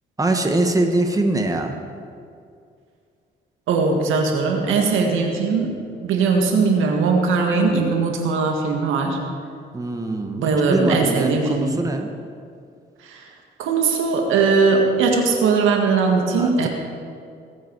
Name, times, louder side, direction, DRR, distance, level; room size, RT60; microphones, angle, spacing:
voice 1, 0.2-1.8 9.7-12.1 16.4-16.7, right 2 dB, 15° right, 4 dB, 1.4 m, -23 dB
voice 2, 3.7-5.7 6.0-9.2 10.4-11.7 13.1-13.2 13.6-16.7, right 4 dB, 90° right, 2 dB, 1.9 m, -19 dB
21.0 x 8.3 x 4.7 m, 2.3 s
cardioid pair, 90°, 20 cm